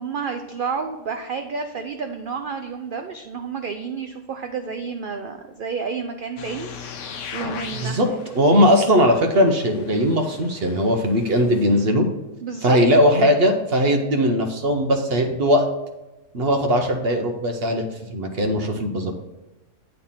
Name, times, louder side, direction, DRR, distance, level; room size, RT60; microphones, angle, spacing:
voice 1, 0.0-6.7 7.3-8.7 12.4-12.8, right 5 dB, 85° right, 5 dB, 0.4 m, -30 dB
sound 1, 6.4-11.9, left 6 dB, 65° left, 0.9 m, -39 dB
voice 2, 7.7-8.1 8.4-12.1 12.6-15.7 16.3-19.1, equal, 50° right, 5 dB, 0.9 m, -19 dB
8.9 x 3.3 x 5.5 m, 1.0 s
omnidirectional pair, 1.5 m